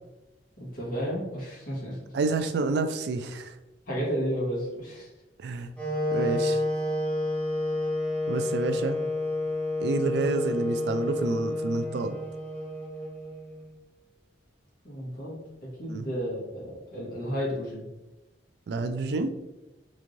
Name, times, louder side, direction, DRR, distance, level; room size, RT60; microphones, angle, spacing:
voice 1, 0.6-2.0 3.9-5.1 14.8-17.8, equal, 55° left, -5 dB, 1.4 m, -32 dB
voice 2, 2.1-3.5 5.4-5.7 6.1-6.6 8.3-9.0 9.8-12.2 15.9-16.0 18.7-19.3, right 3 dB, 65° right, 9 dB, 0.3 m, -29 dB
Wind instrument woodwind instrument, 5.8-13.7, left 2 dB, 5° left, 0.8 m, -29 dB
3.4 x 3.1 x 2.5 m, 1.0 s
head